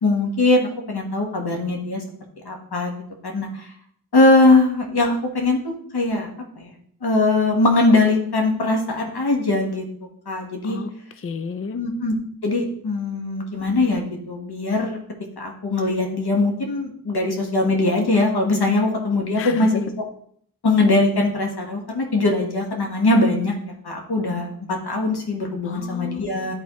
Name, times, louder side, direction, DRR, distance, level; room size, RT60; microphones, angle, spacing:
voice 1, 0.0-2.0 2.4-2.9 3.2-3.7 4.1-6.3 6.6-6.7 7.0-9.8 10.3-10.8 11.7-12.2 12.4-15.0 15.4-19.9 20.6-26.5, left 2 dB, 80° left, 2 dB, 1.5 m, -21 dB
voice 2, 10.6-11.8 19.4-19.8 25.6-26.5, left 5 dB, 35° left, 9 dB, 0.4 m, -32 dB
10.5 x 4.1 x 3.1 m, 0.62 s
wide cardioid pair, 75°, 38 cm